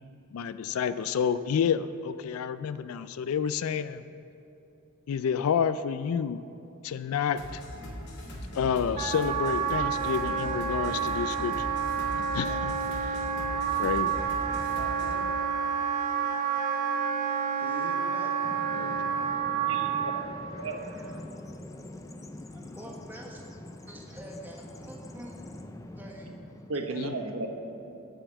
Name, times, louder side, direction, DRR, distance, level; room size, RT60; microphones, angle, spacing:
voice 1, 0.3-4.0 5.1-6.4 6.8-7.6 8.5-11.7 12.1-13.2 13.7-14.1 18.7-19.0 27.0-27.1, left 7 dB, 85° left, 13 dB, 0.3 m, -29 dB
sound 1, 7.3-15.2, equal, 55° left, 1.9 m, -40 dB
Wind instrument woodwind instrument, 9.0-20.3, right 7 dB, 40° right, 0.8 m, -29 dB
voice 2, 14.4-15.4 17.6-18.3 22.5-23.4 23.9-25.3 26.0-26.3, right 1 dB, 10° right, -2 dB, 1.3 m, -45 dB
Bird vocalization bird call bird song, 18.4-26.7, left 1 dB, 15° left, 0.4 m, -44 dB
voice 3, 19.7-21.2 26.7-27.5, right 2 dB, 70° right, 3 dB, 1.1 m, -35 dB
9.0 x 7.0 x 8.1 m, 2.9 s
head